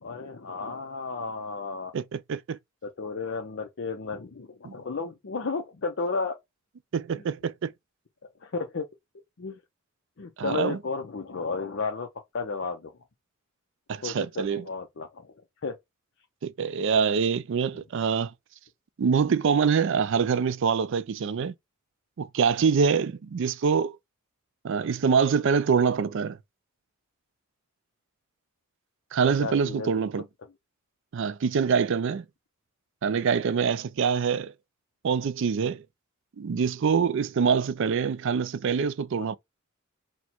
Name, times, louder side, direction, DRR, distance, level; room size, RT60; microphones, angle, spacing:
voice 1, 0.0-1.9 2.8-6.4 7.1-7.2 8.4-8.9 9.4-9.6 10.2-12.1 12.3-12.9 14.0-15.3 15.6-15.8 29.4-30.0 39.2-39.3, left 4 dB, 60° left, 0.6 m, -33 dB
voice 2, 1.9-2.6 4.6-4.7 6.9-7.7 10.4-10.8 13.9-14.6 16.4-18.3 19.0-21.5 22.2-24.0 24.6-26.4 29.1-30.2 31.1-32.2 33.0-34.5 35.0-35.8 36.4-39.4, right 6 dB, 60° right, 0.4 m, -25 dB
4.3 x 2.1 x 4.3 m
head